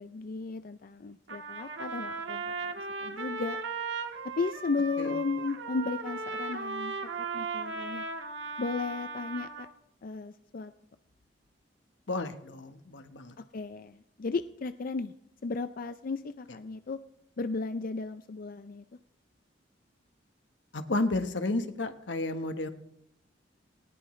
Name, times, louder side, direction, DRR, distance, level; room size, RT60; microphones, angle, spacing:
voice 1, 0.0-2.7 3.0-3.6 4.2-7.0 7.3-8.0 8.6-9.7 10.0-10.7 13.4-15.1 15.4-17.0 17.4-18.8, left 4 dB, 50° left, 11 dB, 0.5 m, -34 dB
Trumpet, 1.3-9.7, right 4 dB, 80° right, 1.5 m, -37 dB
voice 2, 12.1-13.3 20.7-22.7, left 2 dB, 85° left, 8 dB, 1.2 m, -32 dB
18.5 x 18.5 x 3.2 m, 0.78 s
head